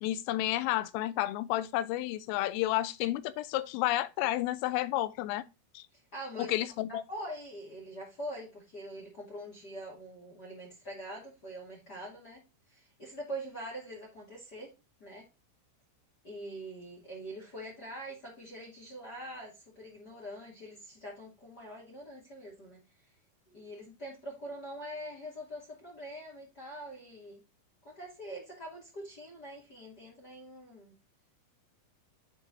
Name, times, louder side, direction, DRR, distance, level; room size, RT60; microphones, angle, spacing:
voice 1, 0.0-5.5 5.7-5.9 6.4-7.0, left 15 dB, 85° left, 3.1 m, -31 dB
voice 2, 6.1-6.5 7.1-12.4 12.7-14.7 15.0-15.3 16.2-22.8 23.5-27.4 27.8-30.9, right 1 dB, 40° left, 1.5 m, -44 dB
11.0 x 4.5 x 2.6 m
omnidirectional pair, 5.9 m